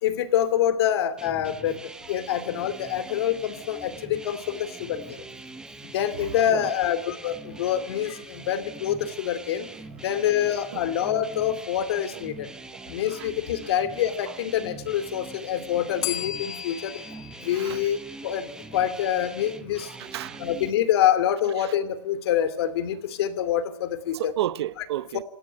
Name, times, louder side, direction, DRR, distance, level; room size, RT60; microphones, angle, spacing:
voice 1, 0.0-5.2 5.9-9.7 10.0-12.5 12.9-17.0 17.4-18.0 18.2-19.9 20.4-24.3 24.8-24.9, left 10 dB, 55° left, 2.7 m, -26 dB
sound 1, 1.2-20.7, right 2 dB, 5° right, 1.1 m, -43 dB
Bell, 16.0-18.8, left 12 dB, 25° left, 1.9 m, -36 dB
voice 2, 20.0-20.5 24.1-25.2, right 13 dB, 55° right, 0.9 m, -31 dB
26.5 x 17.5 x 9.1 m
hypercardioid pair, 165°, 16 cm